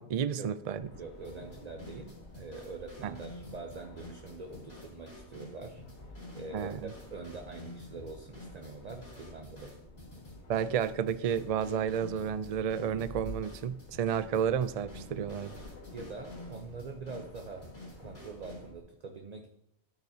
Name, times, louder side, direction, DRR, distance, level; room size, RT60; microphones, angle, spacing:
voice 1, 0.0-0.9 3.0-3.1 6.5-6.9 10.5-15.6, right 8 dB, 60° right, 14 dB, 0.4 m, -31 dB
sound 1, 0.7-18.8, left 2 dB, 85° left, 1.8 m, -51 dB
voice 2, 1.0-9.8 15.9-17.6 18.0-19.5, right 4 dB, 40° right, 4 dB, 0.8 m, -44 dB
sound 2, 1.2-18.7, left 1 dB, 40° left, 3.4 m, -50 dB
12.0 x 8.8 x 2.7 m, 0.79 s
omnidirectional pair, 1.1 m